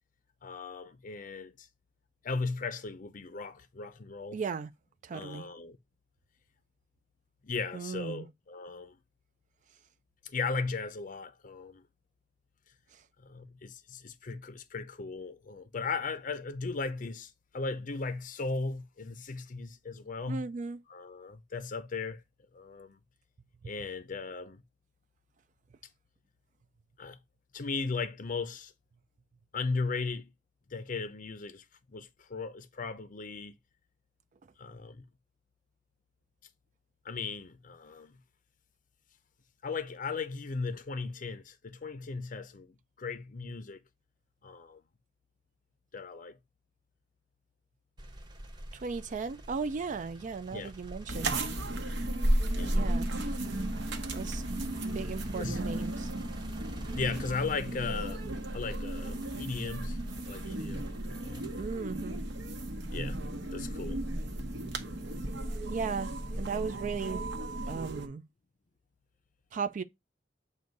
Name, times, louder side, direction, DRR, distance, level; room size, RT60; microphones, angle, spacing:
voice 1, 0.4-1.7 2.2-4.4 5.1-5.8 7.4-9.0 10.2-11.8 13.2-20.4 20.9-22.2 22.5-23.0 23.6-24.6 27.0-27.2 27.5-28.7 29.5-30.3 30.7-33.5 34.6-35.0 37.0-38.1 39.6-43.8 44.4-44.8 45.9-46.4 50.5-50.7 52.5-52.7 55.4-55.6 56.9-60.0 60.2-61.5 62.9-63.2 63.5-64.0, left 4 dB, 45° left, 0.6 m, -37 dB
voice 2, 4.3-4.7 5.0-5.5 7.7-8.3 12.9-13.0 20.3-20.8 23.6-23.7 48.7-51.4 52.7-53.1 54.1-54.4 54.8-56.1 61.5-62.2 65.7-67.3 67.7-68.3 69.5-69.8, right 5 dB, 45° right, 0.3 m, -36 dB
sound 1, 48.0-63.0 63.6-64.8, equal, 25° right, 0.9 m, -49 dB
sound 2, 51.1-68.1, right 1 dB, 70° right, 1.0 m, -34 dB
7.8 x 2.6 x 5.2 m
head